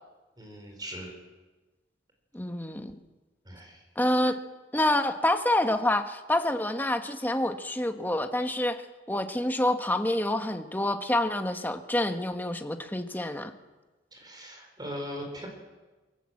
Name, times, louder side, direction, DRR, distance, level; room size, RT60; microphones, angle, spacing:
voice 1, 0.4-1.1 3.4-3.8 14.1-15.5, equal, 20° right, 2 dB, 4.9 m, -40 dB
voice 2, 2.3-2.9 4.0-4.4 4.7-8.8 9.1-13.5, left 1 dB, 10° left, 6 dB, 1.3 m, -27 dB
23.0 x 17.0 x 7.8 m, 1.2 s
head